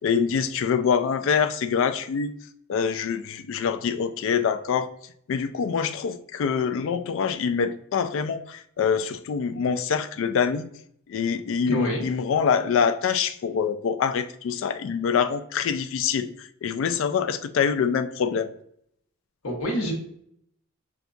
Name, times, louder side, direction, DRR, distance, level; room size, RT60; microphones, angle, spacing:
voice 1, 0.0-2.3 2.7-4.9 5.3-10.7 11.1-18.5, left 6 dB, 60° left, 9 dB, 0.3 m, -25 dB
voice 2, 11.7-12.0 19.4-19.9, equal, 80° left, -1 dB, 1.2 m, -26 dB
5.7 x 2.3 x 2.5 m, 0.69 s
head